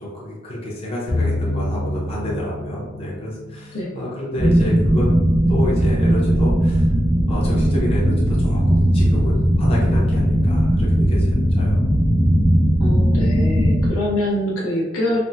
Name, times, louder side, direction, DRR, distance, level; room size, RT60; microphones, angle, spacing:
voice 1, 0.0-5.1 5.5-6.9 7.3-11.8, left 1 dB, 30° left, -6 dB, 0.8 m, -29 dB
sound 1, 1.1-3.5, left 1 dB, 85° right, 1.1 m, -26 dB
sound 2, 4.4-13.9, equal, 5° right, 0.4 m, -17 dB
voice 2, 12.8-15.2, left 1 dB, 80° left, -3 dB, 0.7 m, -24 dB
3.4 x 2.1 x 2.6 m, 1.1 s
head